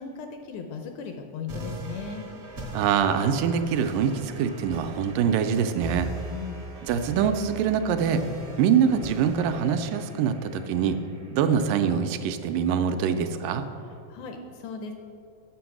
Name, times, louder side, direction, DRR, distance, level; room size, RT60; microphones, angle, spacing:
voice 1, 0.0-2.3 6.3-6.7 14.1-14.9, left 5 dB, 75° left, 5 dB, 1.9 m, -37 dB
sound 1, 1.5-12.5, right 1 dB, 65° right, 0.8 m, -40 dB
voice 2, 2.7-6.1 6.8-8.2 8.6-11.0 11.3-13.7, right 7 dB, 85° right, 8 dB, 2.1 m, -24 dB
7.6 x 6.1 x 5.9 m, 2.4 s
omnidirectional pair, 3.8 m